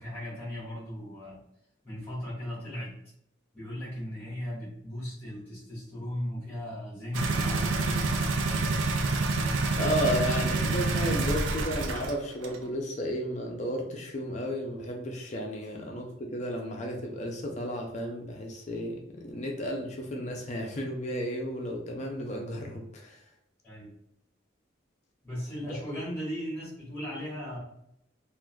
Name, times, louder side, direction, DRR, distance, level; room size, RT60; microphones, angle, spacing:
voice 1, 0.0-1.4 1.8-2.9 3.5-8.8 19.8-19.9 23.6-23.9 25.2-27.6, equal, 10° left, -6 dB, 1.4 m, -37 dB
sound 1, 7.1-12.1 12.4-12.6, right 3 dB, 80° right, 0.4 m, -27 dB
voice 2, 9.8-18.9 19.2-23.2 25.6-25.8, equal, 35° left, 1 dB, 0.5 m, -33 dB
3.5 x 2.5 x 2.2 m, 0.74 s
head